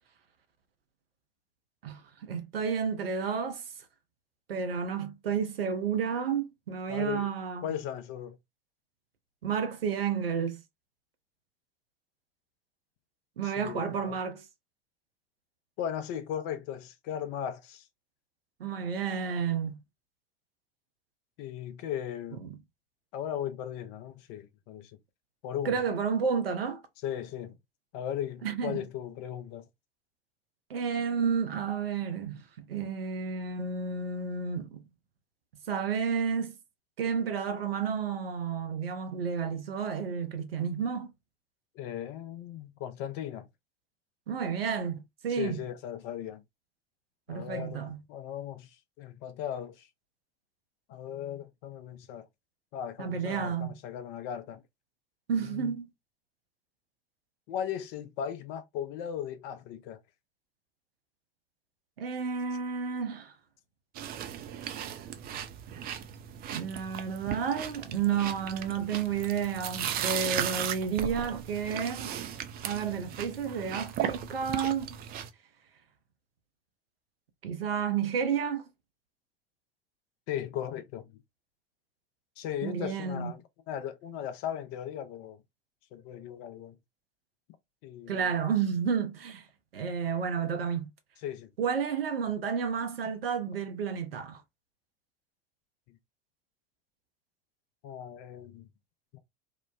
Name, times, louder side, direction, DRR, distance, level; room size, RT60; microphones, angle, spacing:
voice 1, 1.8-3.6 4.5-7.7 9.4-10.6 13.4-14.5 18.6-19.8 22.4-22.6 25.6-26.8 28.4-28.8 30.7-34.8 35.7-36.6 37.0-41.1 44.3-45.6 47.3-48.0 53.0-53.8 55.3-55.9 62.0-63.3 66.5-72.1 72.6-75.0 77.4-78.6 82.6-83.3 88.1-89.5 89.7-90.9 91.6-94.4, right 6 dB, 80° right, 0.6 m, -31 dB
voice 2, 6.9-7.3 7.6-8.4 13.4-14.2 15.8-17.9 21.4-22.4 23.1-25.0 25.4-25.8 27.0-27.5 27.9-29.7 41.7-43.5 45.3-46.4 47.3-49.9 50.9-52.3 52.7-54.6 55.4-55.7 57.5-60.0 80.3-81.0 82.4-85.4 85.9-86.7 87.8-88.4 91.2-91.5 97.8-98.7 99.1-99.2, left 10 dB, 50° left, 0.6 m, -37 dB
sound 1, 63.9-75.3, right 10 dB, 35° right, 0.4 m, -36 dB
3.0 x 2.0 x 2.4 m
figure-of-eight pair, 70°, 29 cm